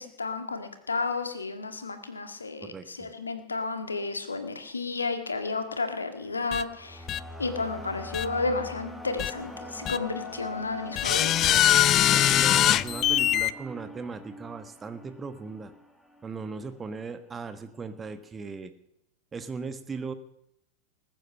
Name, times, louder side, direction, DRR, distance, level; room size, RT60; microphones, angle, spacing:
voice 1, 0.0-7.1 7.4-11.6, left 3 dB, 75° left, 8 dB, 1.9 m, -32 dB
voice 2, 2.6-3.1 12.1-15.7 16.2-18.7 19.3-20.1, right 4 dB, 15° right, 11 dB, 1.3 m, -38 dB
sound 1, 6.2-16.5, left 1 dB, ahead, 1.8 m, -42 dB
sound 2, 6.5-6.6 7.1-7.2 8.1-8.3 9.2-9.3 9.9-10.0 11.0-13.5, left 12 dB, 30° left, 0.5 m, -22 dB
20.5 x 9.3 x 6.5 m, 0.79 s
figure-of-eight pair, 90°, 0 cm